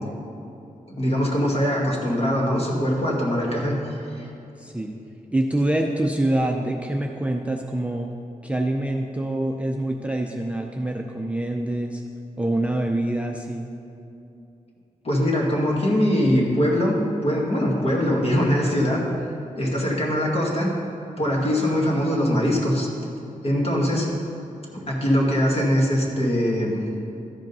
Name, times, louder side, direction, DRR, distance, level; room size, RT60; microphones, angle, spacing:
voice 1, 1.0-4.3 15.0-19.0 19.6-20.7 21.2-22.9 23.4-24.1 24.9-26.8, equal, 45° left, -3 dB, 2.0 m, -22 dB
voice 2, 4.6-5.0 5.3-8.1 8.4-12.0 12.4-13.7, right 1 dB, 10° right, 1 dB, 0.5 m, -25 dB
13.5 x 5.1 x 5.4 m, 2.7 s
wide cardioid pair, 130°, 14 cm